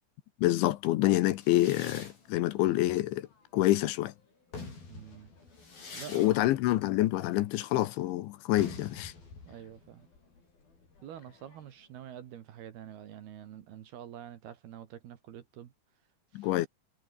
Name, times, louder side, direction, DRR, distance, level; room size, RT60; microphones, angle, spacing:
voice 1, 0.4-3.3 3.5-4.1 6.1-9.1 16.3-16.7, left 16 dB, 80° left, 3.2 m, -27 dB
sound 1, 1.4-3.9 4.3-11.8, left 4 dB, 45° left, 9.9 m, -48 dB
voice 2, 4.9-5.3 5.9-6.3 9.5-10.1 11.0-15.7 16.3-16.5, right 10 dB, 60° right, 3.3 m, -47 dB
omnidirectional pair, 5.7 m